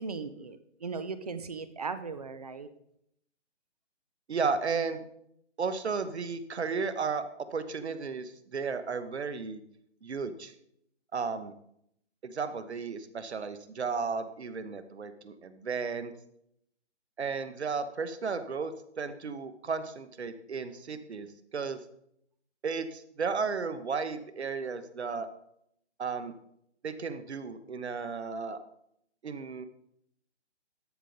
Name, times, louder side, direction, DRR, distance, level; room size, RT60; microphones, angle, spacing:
voice 1, 0.0-2.7, right 4 dB, 35° right, 12 dB, 0.6 m, -38 dB
voice 2, 4.3-5.0 5.6-7.2 7.5-9.6 10.0-10.5 11.1-11.5 12.2-16.1 17.2-18.7 19.0-21.8 22.6-25.3 26.0-26.3 26.8-28.6 29.2-29.6, right 5 dB, 65° right, 11 dB, 1.0 m, -34 dB
13.0 x 5.1 x 3.9 m, 0.73 s
figure-of-eight pair, 150°, 35 cm